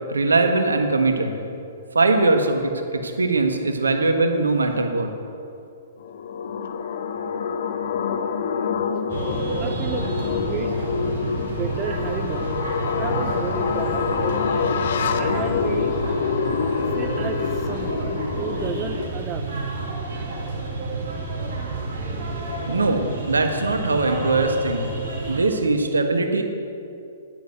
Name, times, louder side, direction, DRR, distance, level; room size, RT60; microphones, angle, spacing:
voice 1, 0.1-1.3 1.9-5.1 22.7-24.8 25.3-26.4, right 3 dB, 75° right, 6 dB, 1.5 m, -21 dB
sound 1, 6.0-19.1, left 6 dB, 60° left, 0.9 m, -26 dB
sound 2, 9.1-25.4, right 3 dB, 55° right, 3.8 m, -30 dB
voice 2, 9.6-10.8 11.4-12.5 13.0-14.3 15.2-15.9 16.9-19.5, right 7 dB, 30° right, 7 dB, 0.7 m, -32 dB
10.5 x 10.0 x 7.9 m, 2.6 s
figure-of-eight pair, 115°, 0 cm